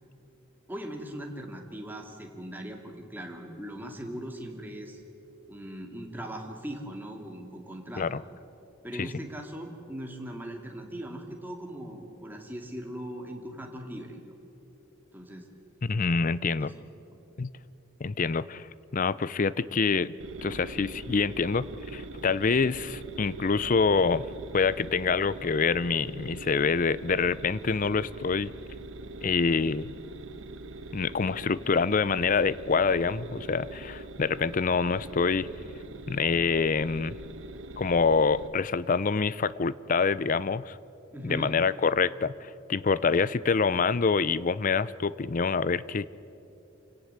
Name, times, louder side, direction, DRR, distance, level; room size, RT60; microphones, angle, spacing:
voice 1, 0.7-5.0 5.5-8.1 8.8-14.3 15.1-15.5 16.6-17.2 41.1-41.6, right 1 dB, 10° right, 1 dB, 2.3 m, -40 dB
voice 2, 15.8-16.7 17.4-17.5 18.0-20.1 20.4-21.7 21.9-24.3 24.5-28.5 29.2-29.9 30.9-35.5 36.1-37.2 37.8-40.8 41.2-46.1, left 5 dB, 40° left, 18 dB, 0.5 m, -26 dB
sound 1, 20.2-38.5, right 2 dB, 70° right, 1.1 m, -43 dB
27.5 x 17.0 x 8.0 m, 2.9 s
head